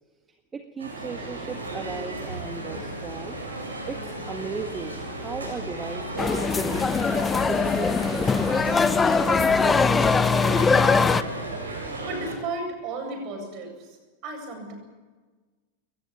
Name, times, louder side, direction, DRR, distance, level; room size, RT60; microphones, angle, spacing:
voice 1, 0.5-3.4 3.9-7.0 7.5-10.6, right 4 dB, 15° right, 5 dB, 1.8 m, -36 dB
sound 1, 0.8-12.4, right 2 dB, 75° right, 7.6 m, -35 dB
sound 2, 1.5-11.7, left 2 dB, 75° left, 2.6 m, -42 dB
sound 3, 6.2-11.2, left 5 dB, 15° left, 0.9 m, -21 dB
voice 2, 12.0-14.0 14.2-14.7, right 2 dB, 40° right, 4 dB, 7.8 m, -34 dB
22.0 x 19.0 x 8.5 m, 1.3 s
figure-of-eight pair, 90°, 0 cm